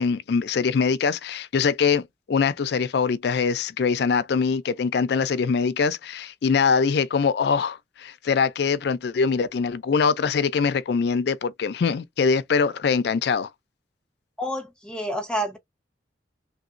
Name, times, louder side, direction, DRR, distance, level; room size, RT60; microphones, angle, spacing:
voice 1, 0.0-13.5, left 5 dB, 65° left, 0.4 m, -23 dB
voice 2, 14.4-15.6, equal, 5° left, 0.9 m, -29 dB
3.1 x 2.9 x 2.5 m
head